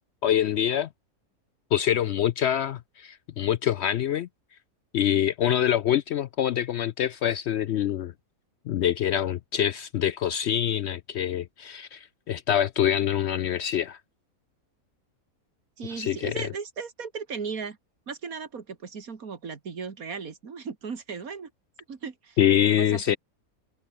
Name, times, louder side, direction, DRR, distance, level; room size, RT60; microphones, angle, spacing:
voice 1, 0.2-0.9 1.7-4.3 4.9-8.1 8.7-14.0 16.0-16.5 22.4-23.2, left 10 dB, 65° left, 0.7 m, -25 dB
voice 2, 15.8-17.8 18.1-21.5 21.9-22.4 22.7-23.2, right 5 dB, 80° right, 2.4 m, -36 dB
omnidirectional pair, 1.5 m